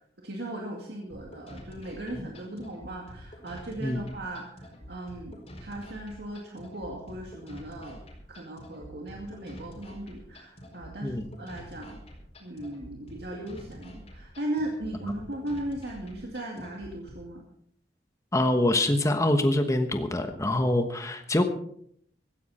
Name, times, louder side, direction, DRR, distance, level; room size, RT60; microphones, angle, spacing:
voice 1, 0.2-8.0 8.3-11.9 12.4-17.4, right 1 dB, 65° right, 0 dB, 2.3 m, -37 dB
sound 1, 1.1-17.1, equal, 35° left, 4.7 m, -47 dB
voice 2, 18.3-21.4, left 1 dB, 15° left, 6 dB, 1.1 m, -25 dB
16.5 x 15.0 x 4.3 m, 0.66 s
head